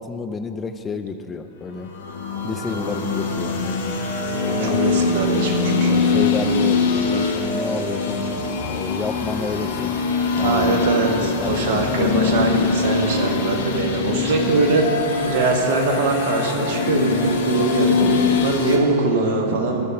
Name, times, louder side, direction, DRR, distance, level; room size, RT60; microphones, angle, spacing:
voice 1, 0.0-1.9 2.4-4.0 4.5-4.8 6.0-8.4 8.7-10.0 10.3-12.4, left 5 dB, 20° left, 8 dB, 0.4 m, -30 dB
sound 1, 1.9-18.8, left 4 dB, 60° left, 0.9 m, -23 dB
voice 2, 4.2-6.2 10.4-14.9 15.2-19.8, right 3 dB, 50° right, 2 dB, 1.2 m, -22 dB
13.5 x 5.3 x 5.1 m, 2.7 s
figure-of-eight pair, 90°, 0 cm